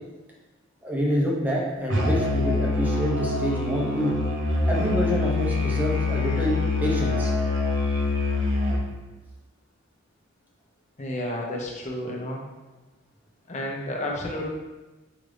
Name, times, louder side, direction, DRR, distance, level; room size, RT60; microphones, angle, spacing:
voice 1, 0.8-4.1 4.7-7.3, equal, 10° right, -3 dB, 0.7 m, -27 dB
Musical instrument, 1.9-8.9, left 2 dB, 60° right, 0.6 m, -25 dB
voice 2, 11.0-12.4 13.5-14.4, left 1 dB, 35° left, -1 dB, 0.7 m, -31 dB
4.9 x 2.7 x 3.2 m, 1.2 s
head